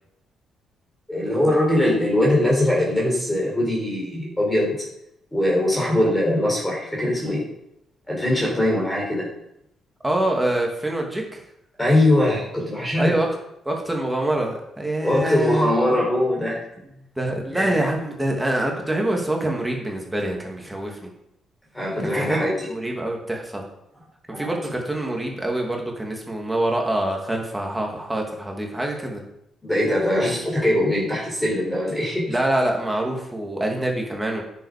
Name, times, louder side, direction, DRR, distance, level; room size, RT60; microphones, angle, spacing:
voice 1, 1.1-4.9 5.3-7.5 8.1-9.3 11.8-13.2 15.0-16.6 17.5-17.9 21.7-22.7 24.3-24.6 29.6-32.4, left 1 dB, 10° left, -3 dB, 3.9 m, -21 dB
voice 2, 10.0-11.4 13.0-13.3 13.7-15.7 17.2-21.0 22.1-22.4 22.7-23.6 24.4-29.2 32.3-34.4, right 1 dB, 10° right, 0 dB, 2.5 m, -25 dB
10.0 x 7.2 x 5.1 m, 0.78 s
cardioid pair, 90°, 0 cm